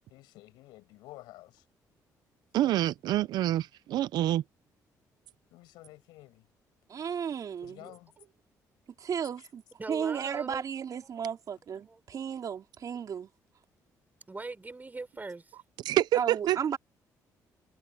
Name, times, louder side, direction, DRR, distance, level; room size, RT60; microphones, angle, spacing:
voice 1, 0.1-1.6 2.6-2.8 5.5-6.5 7.6-8.1 9.4-9.5, left 18 dB, 90° left, 7.8 m, -51 dB
voice 2, 2.5-4.4 15.8-16.6, right 13 dB, 75° right, 0.6 m, -27 dB
voice 3, 6.9-7.9 9.0-9.6 9.9-13.3 16.1-16.8, right 7 dB, 55° right, 4.4 m, -34 dB
voice 4, 9.8-10.7 11.8-12.0 14.3-15.5, right 3 dB, 25° right, 6.1 m, -40 dB
supercardioid pair, 75°, 7 cm